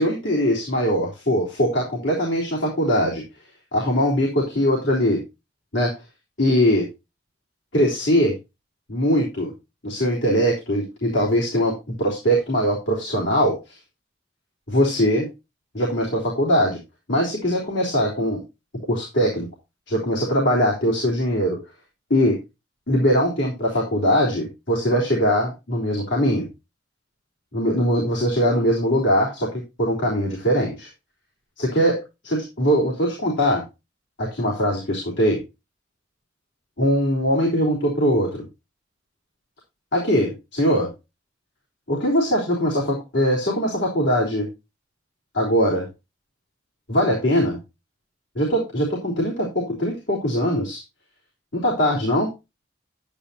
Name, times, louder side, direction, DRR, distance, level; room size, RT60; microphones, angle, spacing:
voice 1, 0.0-3.2 3.7-5.2 5.7-5.9 6.4-6.9 7.7-8.3 8.9-9.5 9.8-13.8 14.7-15.3 15.7-16.8 17.1-18.4 18.9-19.5 19.9-21.6 22.1-22.4 22.9-26.5 27.5-30.9 31.6-33.6 34.2-35.4 36.8-38.4 39.9-40.9 41.9-44.5 45.3-45.9 46.9-47.6 48.4-50.8 51.5-52.3, equal, 80° left, -3 dB, 3.6 m, -21 dB
11.5 x 10.0 x 2.8 m, 0.26 s
head